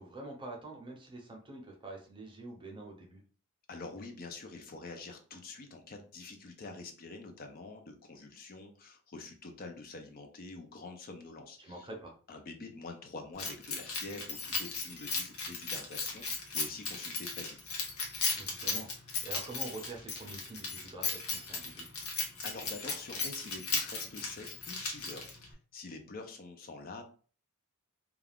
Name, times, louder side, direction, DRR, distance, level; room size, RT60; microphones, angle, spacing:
voice 1, 0.0-3.2 11.6-12.2 18.3-21.9, right 2 dB, 25° right, 0 dB, 0.7 m, -46 dB
voice 2, 3.7-11.9 12.3-17.6 22.4-27.0, left 3 dB, 45° left, 5 dB, 0.5 m, -46 dB
Keys jangling, 13.4-25.5, left 4 dB, 85° left, 0.8 m, -36 dB
2.4 x 2.3 x 3.4 m, 0.39 s
head